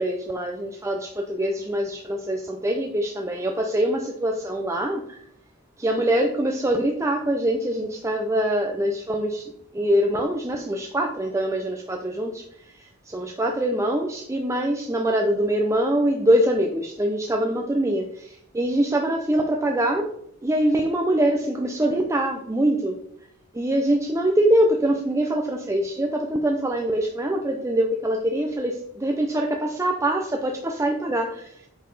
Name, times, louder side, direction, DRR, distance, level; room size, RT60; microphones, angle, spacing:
voice 1, 0.0-5.2 5.8-20.1 20.4-23.0 23.5-31.7, right 1 dB, 15° right, 2 dB, 0.5 m, -24 dB
7.5 x 5.6 x 4.0 m, 0.72 s
head